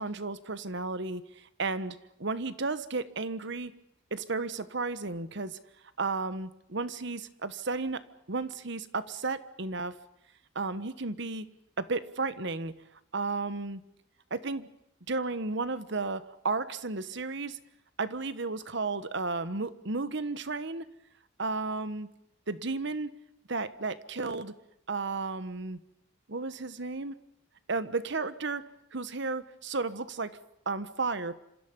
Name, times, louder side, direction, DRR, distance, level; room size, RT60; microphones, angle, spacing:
voice 1, 0.0-3.7 4.1-5.6 6.0-8.0 8.3-10.0 10.5-11.5 11.8-12.7 13.1-13.8 14.3-14.7 15.1-17.6 18.0-20.9 21.4-22.1 22.5-23.1 23.5-24.5 24.9-25.8 26.3-27.2 27.7-28.6 28.9-30.4 30.7-31.3, right 3 dB, 65° right, 13 dB, 1.3 m, -33 dB
27.0 x 27.0 x 5.5 m, 0.80 s
head